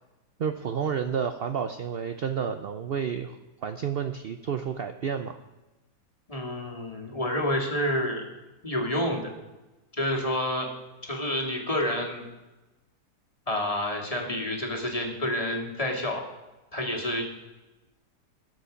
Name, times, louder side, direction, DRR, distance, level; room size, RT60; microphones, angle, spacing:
voice 1, 0.4-3.4 3.6-5.4, right 7 dB, 65° right, 8 dB, 0.6 m, -30 dB
voice 2, 6.3-8.2 8.6-9.3 9.9-10.7 11.0-12.2 13.5-16.2 16.7-17.2, left 1 dB, 20° left, 0 dB, 2.2 m, -29 dB
21.0 x 7.0 x 5.1 m, 1.1 s
omnidirectional pair, 1.8 m